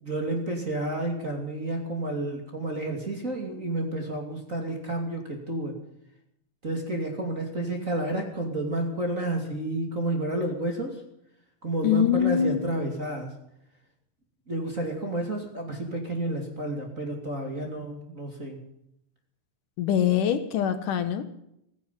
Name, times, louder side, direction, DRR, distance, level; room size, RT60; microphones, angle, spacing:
voice 1, 0.0-5.8 6.6-11.0 11.6-13.3 14.5-18.6, right 1 dB, 25° right, 3 dB, 2.5 m, -30 dB
voice 2, 11.8-12.7 19.8-21.2, left 9 dB, 70° left, 9 dB, 2.6 m, -24 dB
15.5 x 15.5 x 5.6 m, 0.77 s
omnidirectional pair, 4.0 m